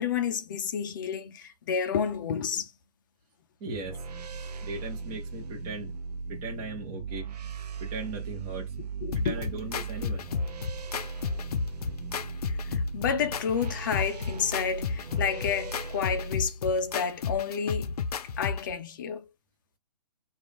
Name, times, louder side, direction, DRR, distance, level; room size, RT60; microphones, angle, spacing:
voice 1, 0.0-2.7 9.0-9.4 12.5-17.9 18.4-19.3, left 7 dB, 30° left, 0.6 m, -30 dB
voice 2, 3.6-4.0 4.6-5.9 6.3-7.3 7.8-8.7 9.2-10.3, right 2 dB, 15° right, 1.2 m, -38 dB
sound 1, 3.6-16.5, right 5 dB, 70° right, 0.8 m, -38 dB
sound 2, 9.1-18.7, left 5 dB, 65° left, 0.6 m, -33 dB
3.6 x 2.6 x 3.5 m
hypercardioid pair, 165°, 21 cm